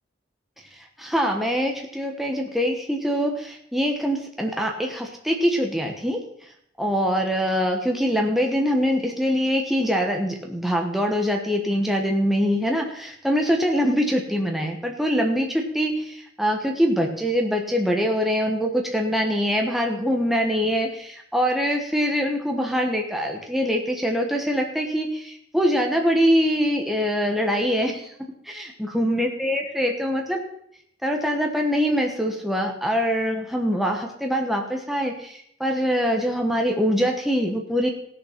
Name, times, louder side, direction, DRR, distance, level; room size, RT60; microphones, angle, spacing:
voice 1, 1.0-6.2 6.8-28.0 28.4-30.4 31.0-37.9, equal, ahead, 1 dB, 1.2 m, -23 dB
16.5 x 6.8 x 5.8 m, 0.70 s
head